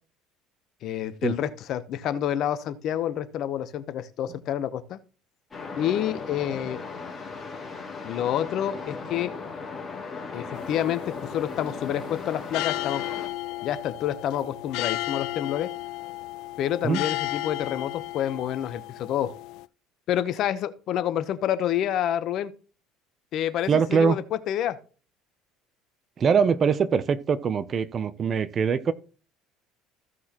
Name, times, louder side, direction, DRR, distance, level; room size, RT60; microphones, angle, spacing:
voice 1, 0.8-5.0 5.8-6.8 8.0-9.3 10.3-13.0 13.6-15.7 16.6-19.3 20.1-22.5 23.3-24.8, left 11 dB, 50° left, 0.9 m, -28 dB
sound 1, 5.5-13.3, left 4 dB, 15° left, 3.1 m, -37 dB
sound 2, 10.5-19.7, left 19 dB, 65° left, 0.4 m, -34 dB
voice 2, 23.7-24.2 26.2-28.9, right 6 dB, 30° right, 0.6 m, -23 dB
15.0 x 6.2 x 3.0 m
cardioid pair, 140°, 0 cm